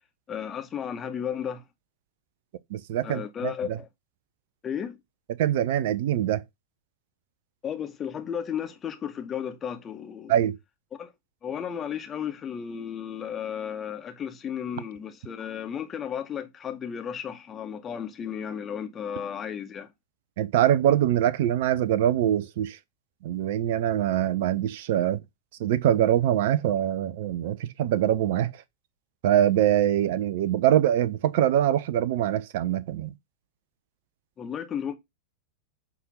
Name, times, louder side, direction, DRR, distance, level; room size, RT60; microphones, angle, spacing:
voice 1, 0.3-1.6 3.0-3.9 4.6-5.0 7.6-10.3 11.0-11.1 11.4-19.9 34.4-35.0, left 8 dB, 25° left, 1.7 m, -34 dB
voice 2, 2.7-3.8 5.4-6.4 10.3-10.6 20.4-22.8 23.2-25.2 25.6-28.5 29.2-33.1, right 11 dB, 50° right, 0.7 m, -23 dB
8.4 x 3.7 x 5.6 m
figure-of-eight pair, 90°, 0 cm